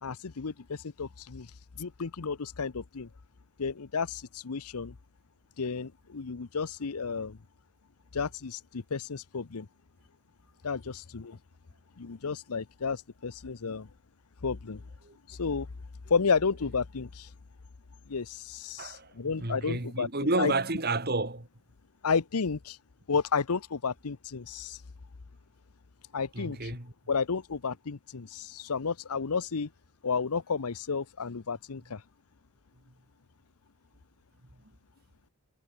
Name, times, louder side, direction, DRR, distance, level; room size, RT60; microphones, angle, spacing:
voice 1, 0.0-1.5 1.8-3.1 3.6-5.0 5.6-7.4 8.1-9.7 10.6-11.4 12.0-13.9 14.4-14.8 15.3-15.7 16.1-17.3 18.1-20.1 20.4-20.5 22.0-22.8 23.1-24.8 26.1-26.7 27.1-29.7 30.0-32.0, left 5 dB, 85° left, 0.8 m, -32 dB
voice 2, 18.8-21.5 26.3-26.9, right 2 dB, 45° right, 2.5 m, -31 dB
head